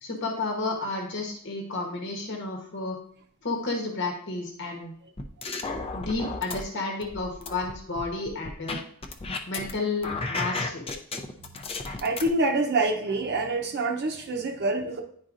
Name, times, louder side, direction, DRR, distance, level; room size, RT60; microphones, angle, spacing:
voice 1, 0.0-3.0 3.4-4.9 5.9-8.8 9.5-10.9, left 3 dB, 55° left, 1 dB, 1.1 m, -31 dB
sound 1, 5.2-6.6 7.0-9.7 10.0-12.3, left 3 dB, 25° left, 0.5 m, -33 dB
voice 2, 11.9-15.0, right 2 dB, 50° right, 3 dB, 0.7 m, -26 dB
10.0 x 4.1 x 2.5 m, 0.63 s
head